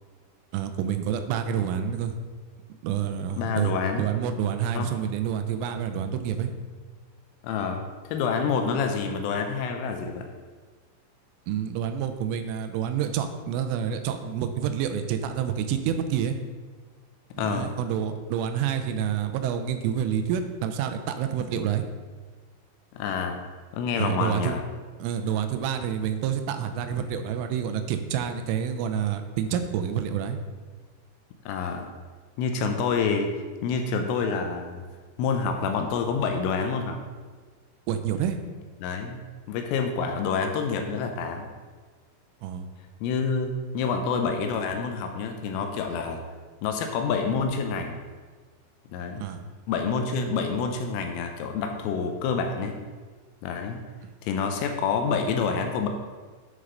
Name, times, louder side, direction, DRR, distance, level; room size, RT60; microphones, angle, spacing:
voice 1, 0.5-2.1 2.8-3.7 4.0-6.5 11.5-16.4 17.4-21.8 23.9-24.5 25.0-30.4 37.9-38.4 42.4-42.7 49.2-49.4, right 8 dB, 85° right, 7 dB, 3.2 m, -28 dB
voice 2, 3.4-4.1 4.7-4.9 7.4-7.8 8.1-10.3 17.4-17.7 22.9-23.4 23.7-24.6 31.5-31.9 32.4-33.3 33.6-34.8 35.2-37.0 38.8-39.2 39.5-41.5 43.0-46.2 46.6-48.0 48.9-49.2 49.7-52.8 53.4-53.8 54.2-55.9, left 5 dB, 85° left, 5 dB, 3.3 m, -27 dB
9.1 x 6.4 x 3.9 m, 1.5 s
omnidirectional pair, 5.7 m